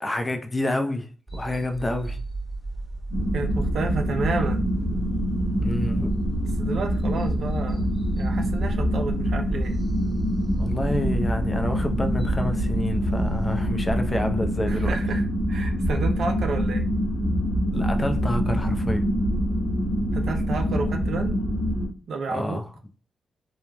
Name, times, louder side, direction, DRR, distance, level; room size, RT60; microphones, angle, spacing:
voice 1, 0.0-2.2 5.6-6.2 10.6-14.9 17.7-19.0 22.3-22.7, left 1 dB, 25° left, 0.5 m, -28 dB
sound 1, 1.3-13.6, right 2 dB, 5° right, 1.3 m, -34 dB
sound 2, 3.1-21.9, equal, 85° left, 0.8 m, -25 dB
voice 2, 3.3-4.6 6.6-7.8 8.2-9.7 14.7-16.8 20.1-21.4 22.1-22.6, right 4 dB, 70° right, 0.4 m, -31 dB
3.0 x 2.2 x 2.2 m
supercardioid pair, 45°, 0 cm